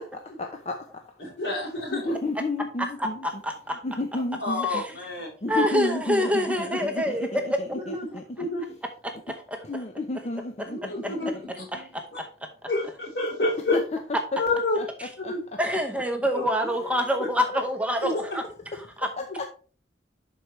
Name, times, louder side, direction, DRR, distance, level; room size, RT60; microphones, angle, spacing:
voice 1, 0.0-1.0 1.4-3.4 3.8-4.9 5.4-8.7 9.6-11.9 13.7-14.4 14.8-15.6 16.6-16.8 17.4-17.6 18.7-18.8 19.2-19.5, left 2 dB, 35° left, 4 dB, 0.7 m, -33 dB
voice 2, 1.2-2.1 4.4-5.3 7.9-8.6 10.7-11.3 12.1-12.2 12.7-13.8 14.4-14.8 15.3-15.4 16.3-16.4 18.0-18.4, left 2 dB, 70° left, 0 dB, 3.5 m, -28 dB
voice 3, 2.8-3.8 4.6-4.9 5.5-7.4 9.0-9.6 11.7-12.3 15.0-15.1 15.6-18.5 18.7-19.1, equal, 5° right, 5 dB, 0.8 m, -27 dB
11.5 x 4.6 x 3.1 m, 0.40 s
head